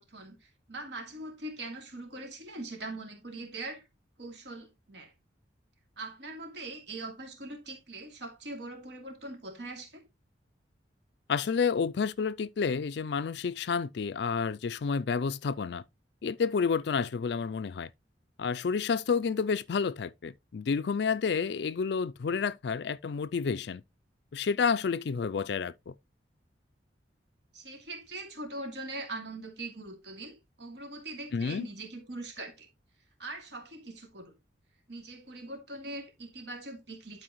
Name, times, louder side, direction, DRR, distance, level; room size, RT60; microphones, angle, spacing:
voice 1, 0.0-3.8 4.2-5.1 6.0-10.0 27.5-32.7 33.2-34.3 34.9-37.2, right 2 dB, 65° right, 2.6 m, -42 dB
voice 2, 11.3-15.8 16.2-17.9 18.4-23.8 24.3-25.9 31.3-31.7, left 5 dB, 60° left, 0.4 m, -30 dB
11.5 x 4.7 x 3.0 m
head